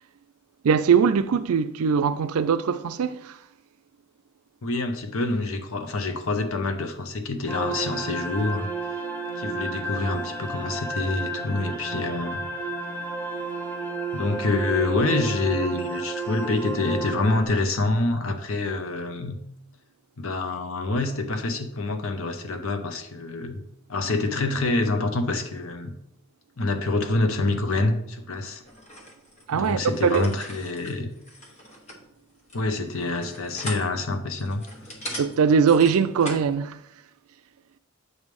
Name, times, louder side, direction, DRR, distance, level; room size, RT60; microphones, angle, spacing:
voice 1, 0.6-3.4 29.5-30.3 35.2-36.8, right 6 dB, 80° right, 0.4 m, -21 dB
voice 2, 4.6-8.7 9.4-12.4 14.1-19.4 20.2-23.6 23.9-25.9 26.6-28.6 29.5-31.1 32.5-34.6, left 2 dB, 70° left, 0.9 m, -26 dB
sound 1, 7.5-17.5, right 3 dB, 10° left, 0.9 m, -32 dB
sound 2, 28.6-36.5, equal, 30° left, 1.1 m, -41 dB
7.9 x 3.3 x 5.3 m
head